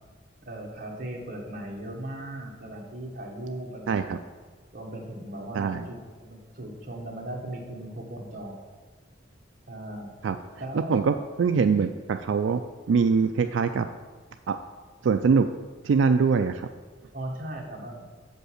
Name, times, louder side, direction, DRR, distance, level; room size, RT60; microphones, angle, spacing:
voice 1, 0.5-4.2 4.7-8.6 9.7-10.1 10.6-11.0 17.1-18.0, right 1 dB, 50° right, -2 dB, 1.8 m, -38 dB
voice 2, 3.9-4.2 5.5-5.9 10.2-10.4 10.9-12.6 12.9-13.9 14.5-14.6 15.0-15.5 15.8-16.7, right 5 dB, 85° right, 8 dB, 0.4 m, -23 dB
7.5 x 5.3 x 6.4 m, 1.4 s
head